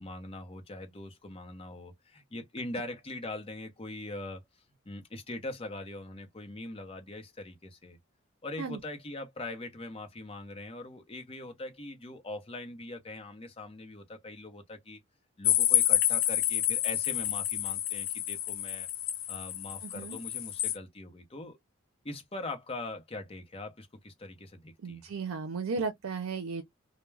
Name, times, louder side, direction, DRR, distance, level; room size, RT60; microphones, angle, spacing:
voice 1, 0.0-4.4 4.9-8.0 8.4-15.0 15.4-18.9 19.3-21.6 22.0-25.0, left 2 dB, 25° left, 0.6 m, -42 dB
sound 1, 15.4-20.7, left 12 dB, 70° left, 0.4 m, -29 dB
voice 2, 19.8-20.2 24.8-26.6, right 4 dB, 80° right, 0.5 m, -35 dB
2.2 x 2.0 x 3.2 m
head